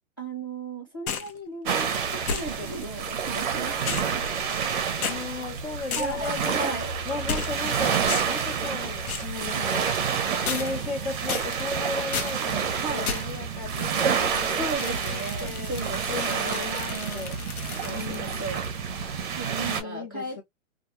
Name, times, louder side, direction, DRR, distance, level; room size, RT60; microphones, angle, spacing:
voice 1, 0.2-4.4 6.0-6.9 12.8-13.1 14.0-14.2 14.6-18.6 19.4-20.4, right 3 dB, 20° left, 0.3 m, -36 dB
sound 1, 1.1-1.4 2.3-2.8 3.9-4.7 5.0-5.2 5.9-6.3 7.3-7.7 8.1-8.5 9.1-9.4 10.5-10.9 11.3-11.7 12.1-12.4 13.1-13.4 14.7-18.7, left 6 dB, 80° left, 0.8 m, -34 dB
sound 2, 1.7-19.8, right 6 dB, 40° right, 0.5 m, -29 dB
voice 2, 5.1-6.7 7.1-15.7 16.1-17.4 17.8-18.5 19.5-20.4, left 4 dB, 45° left, 0.9 m, -36 dB
2.4 x 2.2 x 2.8 m
hypercardioid pair, 150°, 42 cm